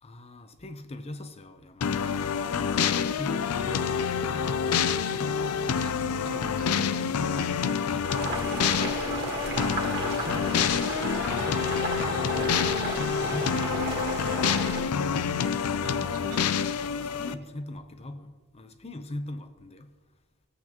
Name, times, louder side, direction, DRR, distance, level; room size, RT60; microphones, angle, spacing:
voice 1, 0.0-2.1 3.0-4.9 13.2-14.8 17.1-20.0, left 1 dB, 30° left, 0.6 m, -42 dB
sound 1, 1.8-17.3, left 7 dB, 85° left, 0.5 m, -27 dB
voice 2, 2.4-2.7 3.5-3.9 5.7-7.4 9.2-9.4 9.9-10.5 11.3-11.6 12.1-13.3 15.8-16.6, right 2 dB, 90° right, 1.0 m, -43 dB
Boiling, 8.0-14.8, right 3 dB, 45° right, 2.0 m, -33 dB
15.5 x 8.4 x 2.9 m
head